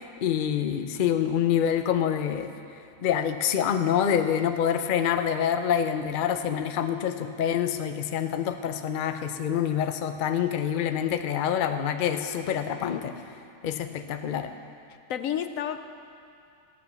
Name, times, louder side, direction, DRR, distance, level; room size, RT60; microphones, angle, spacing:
voice 1, 0.0-2.5 3.0-13.1 13.6-14.5, left 9 dB, 50° left, 8 dB, 0.6 m, -26 dB
voice 2, 12.7-13.0 15.1-15.9, left 9 dB, 75° left, 9 dB, 1.0 m, -32 dB
14.0 x 8.6 x 7.0 m, 2.5 s
omnidirectional pair, 1.4 m